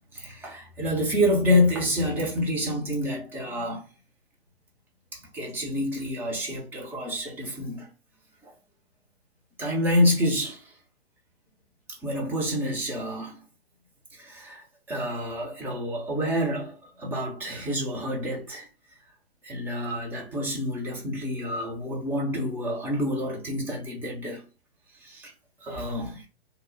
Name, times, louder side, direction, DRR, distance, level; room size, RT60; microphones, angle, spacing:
voice 1, 0.1-3.8 5.1-7.9 8.4-8.5 9.6-10.7 11.9-13.4 14.1-18.7 19.4-24.4 25.0-25.3 25.6-26.2, left 1 dB, 5° right, 0.4 m, -28 dB
2.8 x 2.0 x 3.8 m
hypercardioid pair, 125°, 31 cm